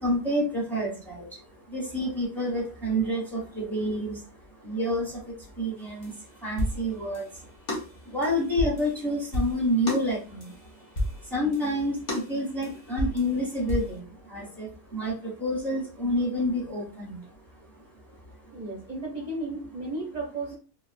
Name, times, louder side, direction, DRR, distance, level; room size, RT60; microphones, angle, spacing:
voice 1, 0.0-7.8 8.0-17.3 17.7-18.5, equal, ahead, -4 dB, 0.8 m, -29 dB
sound 1, 5.8-7.4 7.7-10.7 11.0-14.0, left 1 dB, 50° left, 0.9 m, -32 dB
voice 2, 18.5-20.5, right 2 dB, 45° right, -3 dB, 0.6 m, -34 dB
2.6 x 2.3 x 2.4 m, 0.36 s
omnidirectional pair, 1.4 m